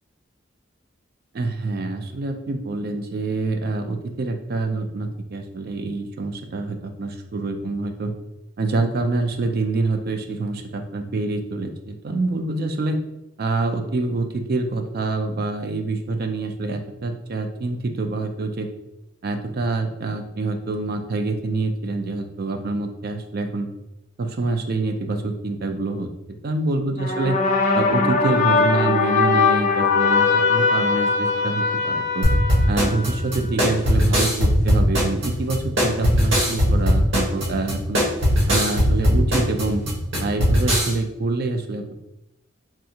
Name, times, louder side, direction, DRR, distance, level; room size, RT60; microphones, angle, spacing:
voice 1, 1.3-8.1 8.6-13.0 13.4-18.7 19.2-23.7 24.2-26.1 26.4-27.4 27.7-32.3 32.7-38.0 38.5-39.8 40.2-41.9, right 3 dB, 50° right, 6 dB, 0.4 m, -26 dB
sound 1, 27.0-33.4, left 4 dB, 40° left, 0.3 m, -21 dB
sound 2, 32.2-40.9, equal, 90° right, 1.2 m, -19 dB
3.4 x 2.4 x 2.8 m, 0.92 s
head